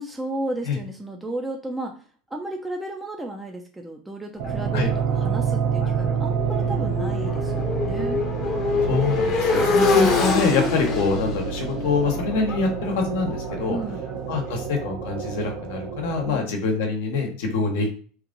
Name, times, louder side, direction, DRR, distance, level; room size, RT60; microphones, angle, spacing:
voice 1, 0.0-1.9 2.3-8.2 9.6-9.9 13.7-14.0 16.2-16.6, right 1 dB, 5° right, 1 dB, 0.5 m, -33 dB
Motorcycle, 4.4-14.3, left 4 dB, 45° left, 0.9 m, -26 dB
sound 1, 4.4-16.4, right 6 dB, 60° right, 0.7 m, -28 dB
voice 2, 8.8-13.8 14.3-17.9, left 4 dB, 80° left, 3 dB, 1.0 m, -25 dB
3.0 x 2.5 x 3.7 m, 0.43 s
supercardioid pair, 130°, 0 cm